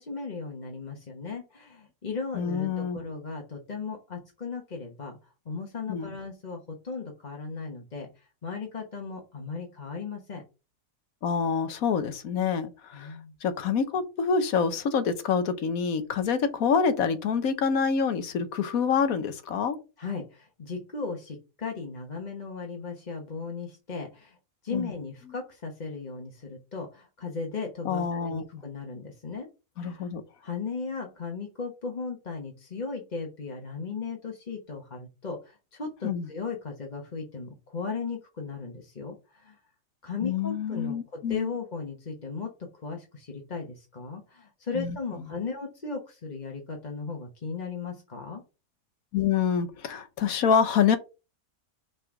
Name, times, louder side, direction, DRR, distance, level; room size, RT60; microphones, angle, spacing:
voice 1, 0.0-5.2 5.4-10.4 12.9-13.3 20.0-24.4 24.6-29.5 29.8-30.1 30.4-39.6 40.0-48.4, left 4 dB, 35° left, 1.1 m, -36 dB
voice 2, 2.3-3.0 5.9-6.1 11.2-13.1 13.4-19.8 24.7-24.9 27.8-28.4 29.8-30.2 36.0-36.3 40.2-41.5 44.7-45.0 49.1-51.0, left 6 dB, 75° left, 1.3 m, -26 dB
5.6 x 4.0 x 4.8 m
omnidirectional pair, 1.5 m